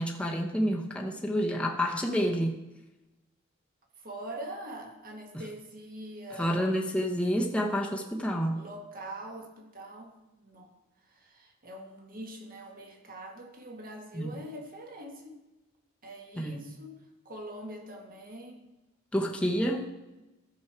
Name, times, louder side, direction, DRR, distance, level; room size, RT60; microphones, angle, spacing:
voice 1, 0.0-2.5 5.3-5.4 6.4-8.6 14.1-14.4 16.4-16.7 19.1-19.9, equal, 5° left, -1 dB, 0.9 m, -29 dB
voice 2, 4.0-7.3 8.5-10.1 10.4-10.7 11.1-15.4 16.0-18.6, right 1 dB, 45° right, 1 dB, 1.7 m, -44 dB
14.0 x 6.3 x 4.5 m, 1.0 s
head